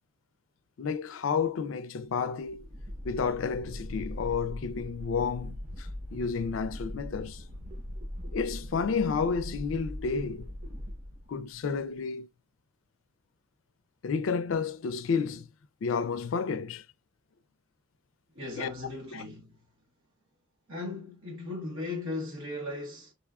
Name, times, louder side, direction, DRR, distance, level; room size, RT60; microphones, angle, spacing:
voice 1, 0.8-2.7 3.0-7.4 8.3-10.5 11.3-12.3 14.0-15.5 15.8-16.8 18.6-18.7 19.1-19.2, left 5 dB, 70° left, 0.4 m, -31 dB
sound 1, 2.4-11.7, equal, 35° right, 1.0 m, -41 dB
voice 2, 18.3-19.6 20.7-23.1, left 2 dB, 75° right, 1.4 m, -37 dB
5.3 x 2.3 x 2.3 m
head